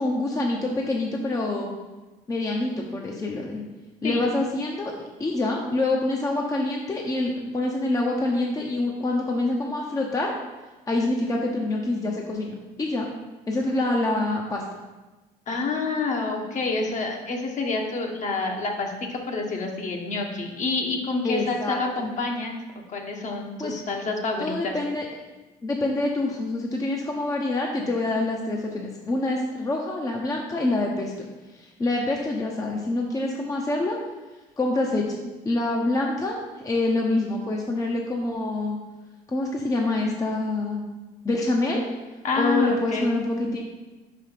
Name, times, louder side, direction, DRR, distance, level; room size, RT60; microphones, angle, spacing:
voice 1, 0.0-1.7 2.3-3.6 4.0-4.9 5.2-10.3 10.9-13.1 13.5-14.6 21.2-22.1 23.6-23.7 24.4-25.1 25.6-31.1 31.6-34.0 34.6-38.8 39.3-40.9 41.2-41.8 42.3-43.6, left 2 dB, 20° left, -1 dB, 0.8 m, -26 dB
voice 2, 15.5-22.5 22.9-24.8 42.2-43.1, left 3 dB, 45° left, 1 dB, 1.2 m, -28 dB
5.0 x 5.0 x 5.8 m, 1.1 s
cardioid pair, 110°, 17 cm